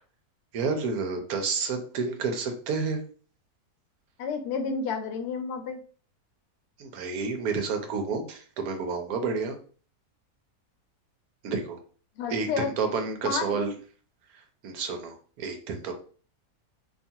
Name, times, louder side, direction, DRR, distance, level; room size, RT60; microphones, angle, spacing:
voice 1, 0.5-3.0 6.8-9.6 11.4-11.8 12.3-13.7 14.3-15.9, right 4 dB, 75° right, 5 dB, 1.1 m, -30 dB
voice 2, 4.2-5.8 12.2-12.7 13.2-13.7, left 5 dB, 90° left, 5 dB, 1.1 m, -31 dB
2.8 x 2.3 x 2.7 m, 0.41 s
omnidirectional pair, 1.6 m